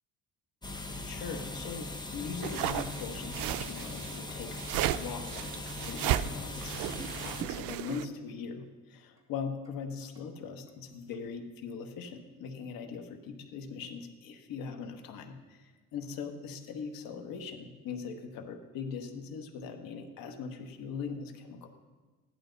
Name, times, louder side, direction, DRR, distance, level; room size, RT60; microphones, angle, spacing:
sound 1, 0.6-7.4, left 2 dB, 10° left, 1.0 m, -40 dB
voice 1, 0.8-4.6 4.9-21.7, left 5 dB, 85° left, 5 dB, 1.4 m, -41 dB
sound 2, 2.4-8.0, right 13 dB, 85° right, 0.5 m, -34 dB
sound 3, 2.9-4.4 4.7-4.8 5.2-5.3 5.7-6.2 6.7-8.2 8.7-8.8 9.2-9.3 9.6-11.3, right 3 dB, 10° right, 2.5 m, -50 dB
15.5 x 11.5 x 4.0 m, 1.3 s
cardioid pair, 130°, 33 cm